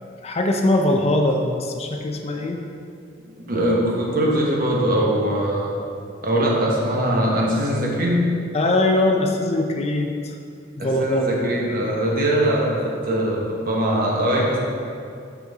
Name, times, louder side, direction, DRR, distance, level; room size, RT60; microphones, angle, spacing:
voice 1, 0.2-2.6 8.5-10.1 10.8-11.3, left 1 dB, 30° left, 3 dB, 0.5 m, -21 dB
voice 2, 3.4-5.8 6.2-8.2 10.8-14.6, right 1 dB, 45° right, -3 dB, 1.2 m, -21 dB
6.6 x 6.2 x 3.6 m, 2.4 s
head